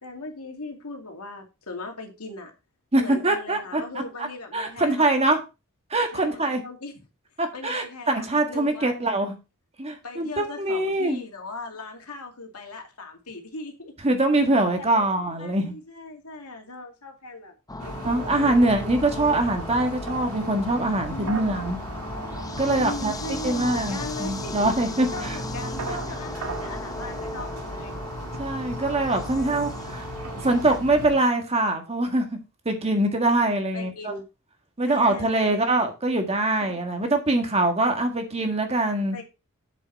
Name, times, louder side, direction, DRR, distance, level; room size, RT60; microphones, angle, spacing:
voice 1, 0.0-2.5 3.0-5.1 6.1-6.9 7.5-9.1 10.0-13.9 14.8-15.1 15.4-17.5 17.8-18.7 21.1-21.7 22.7-24.7 25.1-27.9 29.4-29.6 33.7-34.3 34.9-35.7 39.1-39.2, left 2 dB, 85° left, 2.4 m, -38 dB
voice 2, 2.9-4.3 4.5-5.4 5.9-6.6 7.4-9.4 9.8-11.2 14.0-15.7 18.0-21.8 22.6-23.1 23.4-25.4 28.4-30.1 30.4-32.3 32.7-34.1 34.8-39.2, right 2 dB, 30° right, 1.6 m, -23 dB
sound 1, 17.7-30.8, left 2 dB, 15° left, 0.7 m, -37 dB
sound 2, 17.8-31.2, right 1 dB, 80° right, 1.8 m, -36 dB
7.5 x 7.1 x 4.1 m
head